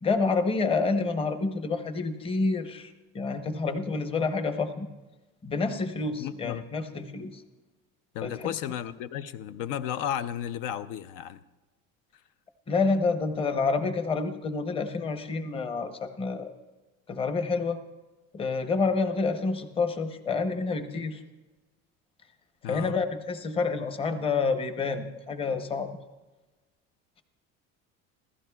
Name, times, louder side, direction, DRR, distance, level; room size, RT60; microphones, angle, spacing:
voice 1, 0.0-4.9 5.4-7.4 8.2-8.5 12.7-16.5 17.1-17.8 18.3-21.2 22.7-25.9, left 4 dB, 15° left, 8 dB, 0.7 m, -28 dB
voice 2, 6.2-6.6 8.1-11.4 22.6-23.0, left 10 dB, 70° left, 12 dB, 0.6 m, -33 dB
27.0 x 15.0 x 2.3 m, 1.2 s
cardioid pair, 155°, 32 cm